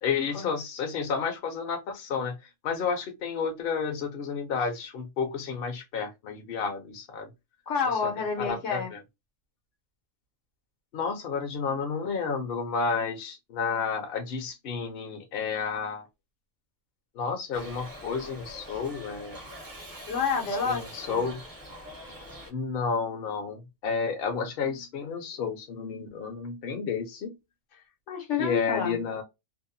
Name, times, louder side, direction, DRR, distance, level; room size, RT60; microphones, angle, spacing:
voice 1, 0.0-2.4 2.6-7.3 8.0-8.1 8.4-9.0 10.9-16.1 17.1-19.4 20.7-21.4 22.5-27.3 28.4-29.2, left 5 dB, 60° left, 0.8 m, -31 dB
voice 2, 7.7-8.9 20.1-21.2 28.1-29.0, left 5 dB, 80° left, 1.2 m, -29 dB
Shout / Livestock farm animals working animals, 17.5-22.5, equal, 25° right, 0.5 m, -44 dB
2.7 x 2.0 x 2.5 m
omnidirectional pair, 1.3 m